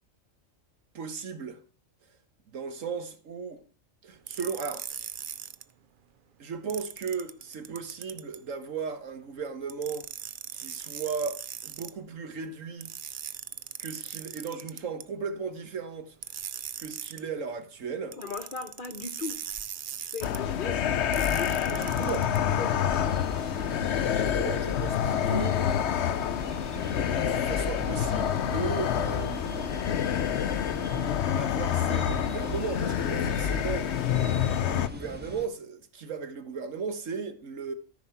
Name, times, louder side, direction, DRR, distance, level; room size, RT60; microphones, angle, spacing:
voice 1, 0.9-1.6 2.5-3.6 4.0-4.9 6.4-10.1 10.5-12.9 13.8-16.1 16.8-18.2 21.7-22.3 24.0-25.6 27.1-29.7 31.3-33.9 34.7-37.7, right 5 dB, 85° right, 1.6 m, -36 dB
sound 1, 4.3-5.6 6.7-8.4 9.7-11.9 12.8-15.0 16.2-17.2 18.1-20.4 21.1-22.4, right 9 dB, 55° right, 0.6 m, -39 dB
voice 2, 18.2-19.4 20.0-23.1, left 4 dB, 45° left, 1.0 m, -39 dB
sound 2, 20.2-34.9, left 9 dB, 65° left, 0.9 m, -27 dB
sound 3, 21.8-35.5, left 1 dB, 10° right, 1.2 m, -42 dB
13.5 x 5.6 x 5.8 m
omnidirectional pair, 1.3 m